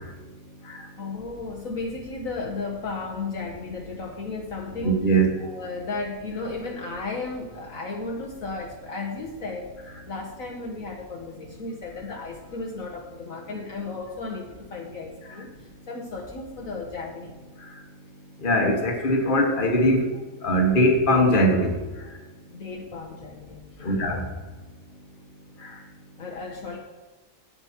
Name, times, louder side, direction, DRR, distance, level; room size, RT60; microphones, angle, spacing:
voice 1, 1.0-5.0 5.4-9.7 10.1-15.5 15.9-17.3 22.5-24.1 26.2-26.8, left 3 dB, 55° left, -1 dB, 1.5 m, -34 dB
voice 2, 4.8-5.4 18.4-20.1 20.4-21.8 23.8-24.2, equal, 30° left, 2 dB, 1.6 m, -21 dB
16.0 x 5.4 x 4.5 m, 1.3 s
omnidirectional pair, 1.7 m